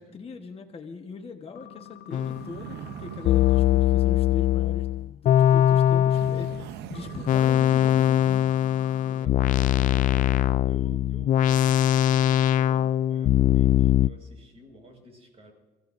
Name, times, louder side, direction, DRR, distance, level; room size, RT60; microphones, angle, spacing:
voice 1, 0.0-8.5, left 4 dB, 35° left, 4 dB, 1.3 m, -41 dB
sound 1, 1.6-3.6 6.9-9.2 12.7-12.9, left 9 dB, 65° left, 1.2 m, -46 dB
sound 2, 2.1-2.4 3.2-6.6 7.3-14.1, left 11 dB, 50° left, 0.4 m, -21 dB
sound 3, 2.1-5.2 6.1-8.8, right 9 dB, 80° right, 0.7 m, -42 dB
voice 2, 9.0-10.3 10.6-15.5, right 2 dB, 35° right, 3 dB, 5.3 m, -51 dB
29.5 x 16.0 x 2.6 m, 1.2 s
cardioid pair, 110°, 17 cm